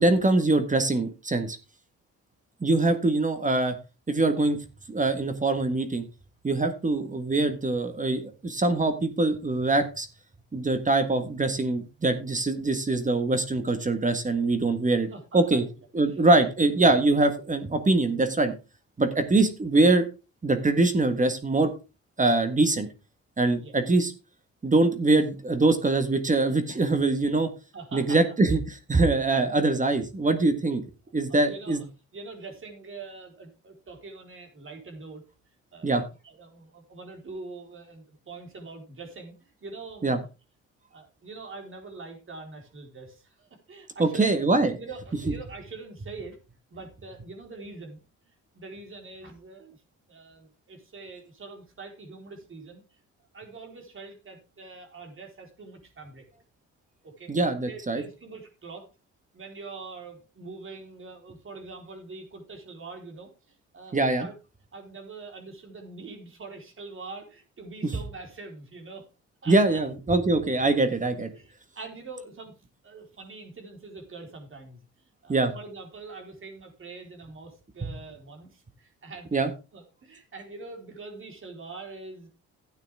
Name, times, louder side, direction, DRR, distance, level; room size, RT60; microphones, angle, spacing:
voice 1, 0.0-1.6 2.6-3.8 4.1-4.6 4.9-6.0 6.4-10.1 10.5-15.1 15.3-15.6 15.9-18.5 19.0-20.0 20.4-21.7 22.2-22.9 23.4-24.1 24.6-27.5 27.9-30.8 31.1-31.8 35.8-36.0 40.0-40.2 44.0-44.7 57.3-58.0 63.9-64.3 67.8-67.9 69.5-71.3 75.3-75.5 79.3-79.5, right 2 dB, 25° right, 8 dB, 1.6 m, -23 dB
voice 2, 15.1-15.7 16.1-16.5 23.6-23.7 27.7-28.2 31.3-31.8 32.1-35.2 35.7-40.3 40.9-44.4 44.8-46.4 46.7-49.8 50.1-52.8 53.3-56.2 57.0-57.3 57.6-58.9 59.3-64.3 64.7-69.0 69.4-69.8 71.3-72.6 72.8-79.4 79.7-82.3, right 3 dB, 45° right, 3 dB, 4.1 m, -44 dB
12.5 x 9.2 x 3.6 m, 0.30 s
cardioid pair, 90°, 30 cm